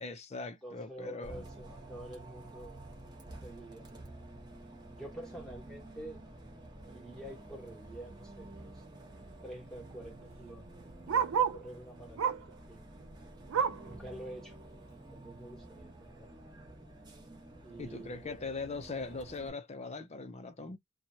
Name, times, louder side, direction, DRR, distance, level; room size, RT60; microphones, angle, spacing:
voice 1, 0.0-1.5 17.8-20.8, left 3 dB, 30° left, 0.5 m, -40 dB
voice 2, 0.6-4.3 4.9-6.2 6.8-8.8 9.4-11.0 11.3-12.8 13.8-14.5 14.8-16.4 17.6-18.4, right 1 dB, ahead, 1.1 m, -48 dB
Bus, 1.2-19.5, right 1 dB, 20° right, 0.9 m, -50 dB
Bark, 8.0-8.2 8.5-8.6 8.8-11.7 12.1-12.6 12.9-13.9 14.4-14.5 14.9-15.0 15.7-15.8, right 7 dB, 65° right, 0.4 m, -33 dB
2.9 x 2.2 x 2.7 m
head